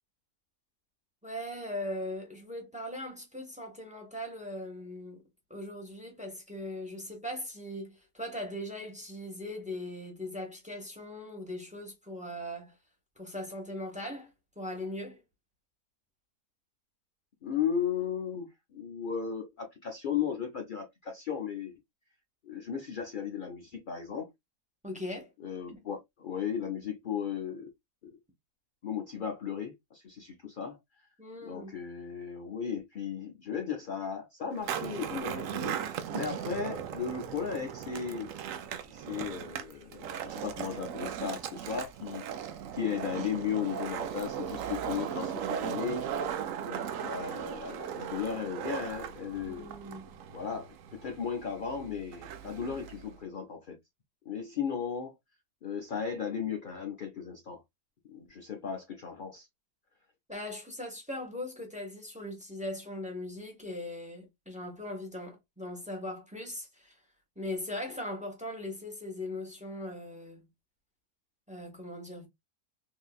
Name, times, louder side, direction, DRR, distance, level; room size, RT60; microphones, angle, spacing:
voice 1, 1.2-5.2 5.5-12.7 13.2-14.3 14.6-15.2 24.8-25.3 25.7-25.8 31.2-31.7 49.4-50.2 60.3-67.0 67.4-70.5 71.5-72.3, left 1 dB, 5° right, 0.8 m, -39 dB
voice 2, 17.4-21.8 22.4-24.3 25.4-27.7 28.8-30.8 31.4-38.3 38.9-46.0 46.6-49.7 50.3-53.8 54.3-55.1 55.6-57.6 58.1-59.5, left 7 dB, 70° left, 0.4 m, -36 dB
Skateboard, 34.5-53.2, right 8 dB, 70° right, 0.9 m, -38 dB
3.7 x 2.7 x 2.3 m
omnidirectional pair, 1.6 m